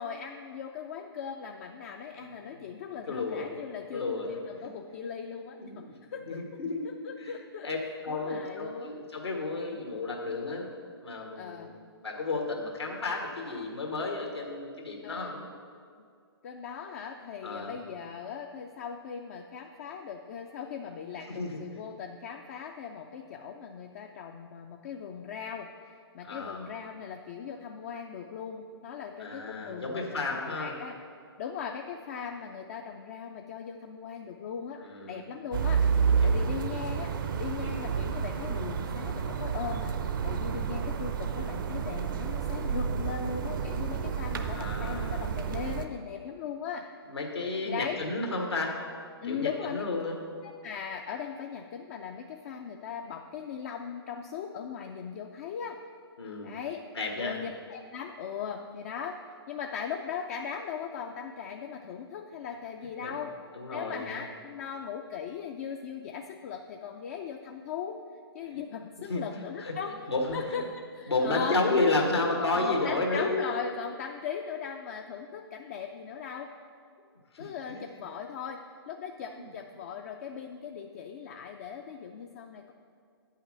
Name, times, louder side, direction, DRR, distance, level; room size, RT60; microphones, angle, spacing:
voice 1, 0.0-5.8 6.1-6.6 6.8-7.7 8.1-8.9 9.7-9.8 11.4-11.7 15.0-15.3 16.4-31.0 31.4-39.9 40.2-46.8 47.6-48.0 49.2-50.0 50.4-55.8 56.4-56.8 57.2-59.2 59.5-63.3 63.7-68.0 68.3-69.9 70.3-70.6 70.9-71.6 72.4-76.5 77.4-78.6 78.9-82.7, left 7 dB, 35° left, 4 dB, 0.4 m, -39 dB
voice 2, 3.1-3.5 3.9-4.4 4.6-4.7 5.6-5.9 6.3-6.9 7.2-7.3 7.6-7.8 8.0-10.7 11.0-15.4 17.4-17.7 21.3-21.6 26.2-26.7 29.2-30.7 34.8-35.2 35.9-36.4 44.5-45.3 47.1-48.9 49.2-50.2 56.2-56.5 56.9-57.4 63.0-63.3 63.5-64.1 69.1-69.2 69.6-69.8 70.1-70.5 71.1-73.4 77.4-77.8 79.3-79.4, left 3 dB, 80° left, 0 dB, 1.6 m, -32 dB
sound 1, 35.5-45.9, right 6 dB, 50° right, 0.6 m, -30 dB
8.7 x 5.7 x 6.0 m, 2.2 s
figure-of-eight pair, 125°, 13 cm